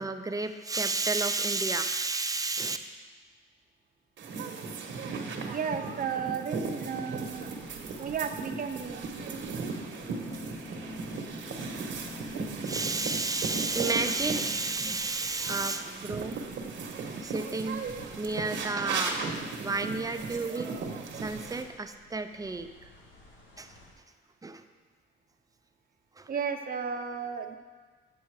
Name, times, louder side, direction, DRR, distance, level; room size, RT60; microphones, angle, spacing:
voice 1, 0.0-2.8 10.3-10.4 12.6-16.4 17.2-17.8 18.2-19.2 19.6-20.8 21.1-22.7 23.6-23.7 24.4-24.6 26.2-26.3, right 3 dB, 20° right, 8 dB, 0.6 m, -31 dB
sound 1, 4.2-21.6, right 4 dB, 70° right, 1.3 m, -37 dB
voice 2, 5.5-7.5 8.0-9.1 26.3-27.6, right 6 dB, 45° right, 6 dB, 0.9 m, -33 dB
sound 2, 7.1-23.9, left 2 dB, 80° left, 1.7 m, -56 dB
sound 3, 9.8-15.1, left 3 dB, 20° left, 0.6 m, -45 dB
9.0 x 7.0 x 4.8 m, 1.5 s
cardioid pair, 90°, 20 cm